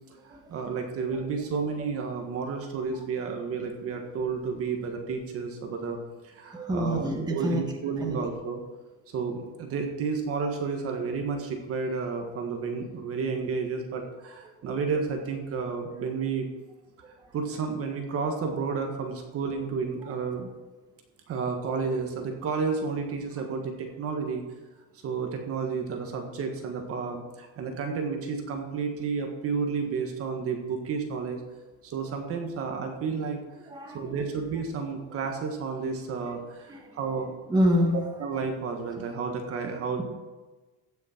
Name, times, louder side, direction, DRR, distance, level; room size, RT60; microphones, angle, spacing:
voice 1, 0.2-6.0 6.2-8.6 9.1-16.5 17.3-20.5 21.3-24.4 25.0-31.4 31.8-33.4 33.9-37.4 38.2-40.0, right 5 dB, 45° right, 3 dB, 1.6 m, -31 dB
voice 2, 6.5-7.6 8.0-8.2 14.6-14.7 17.2-17.3 33.7-34.3 36.7-36.9 37.5-38.0, equal, 10° right, 0 dB, 1.6 m, -27 dB
16.0 x 6.4 x 4.5 m, 1.2 s
cardioid pair, 150°, 32 cm